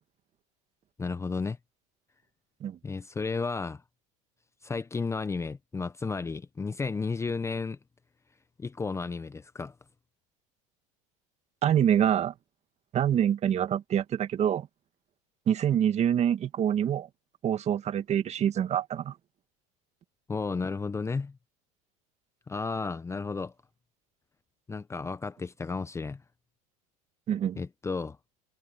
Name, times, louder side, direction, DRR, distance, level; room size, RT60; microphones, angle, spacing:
voice 1, 1.0-1.6 2.8-3.8 4.6-7.8 8.6-9.7 20.3-21.3 22.5-23.5 24.7-26.2 27.6-28.2, left 4 dB, 15° left, 0.8 m, -33 dB
voice 2, 11.6-12.3 12.9-14.7 15.5-17.1 17.4-19.1 27.3-27.6, right 9 dB, 40° right, 2.2 m, -26 dB
hypercardioid pair, 100°, 18 cm